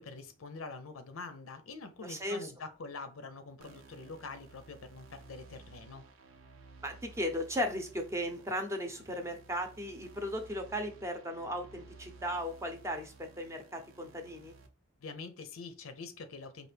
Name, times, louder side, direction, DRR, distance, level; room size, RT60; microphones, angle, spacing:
voice 1, 0.0-6.0 15.0-16.7, left 4 dB, 85° left, 0.7 m, -45 dB
voice 2, 2.0-2.5 6.8-14.5, equal, 15° right, 0.7 m, -36 dB
sound 1, 3.6-14.7, right 3 dB, 80° right, 0.7 m, -56 dB
4.7 x 2.4 x 3.3 m
head